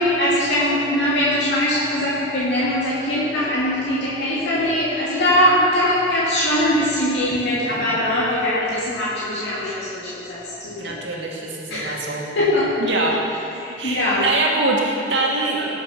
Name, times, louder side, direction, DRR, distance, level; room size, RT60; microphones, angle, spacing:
voice 1, 0.0-11.0 11.7-12.0 12.3-12.8 13.6-14.2, left 1 dB, 65° left, -9 dB, 2.7 m, -21 dB
voice 2, 10.8-12.3 12.8-13.2 13.8-15.8, right 2 dB, 75° right, -2 dB, 2.3 m, -23 dB
18.0 x 7.9 x 6.0 m, 2.7 s
head